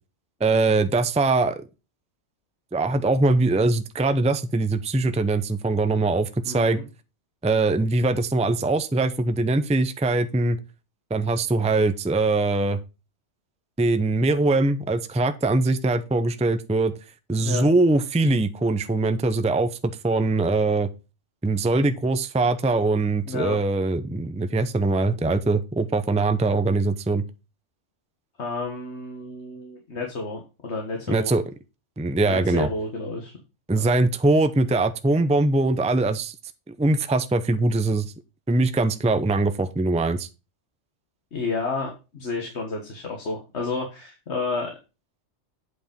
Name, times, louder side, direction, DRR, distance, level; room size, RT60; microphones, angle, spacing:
voice 1, 0.4-1.6 2.7-6.8 7.4-10.6 11.1-12.8 13.8-16.9 17.3-20.9 21.4-27.2 31.1-31.4 32.0-32.7 33.7-36.3 36.8-38.1 38.5-40.3, right 2 dB, 10° right, 9 dB, 0.5 m, -22 dB
voice 2, 6.4-6.8 17.4-17.7 23.3-23.6 28.4-31.3 32.2-33.3 33.7-33.8 41.3-44.7, left 3 dB, 65° left, 2 dB, 1.8 m, -31 dB
8.5 x 5.1 x 5.1 m, 0.29 s
omnidirectional pair, 1.2 m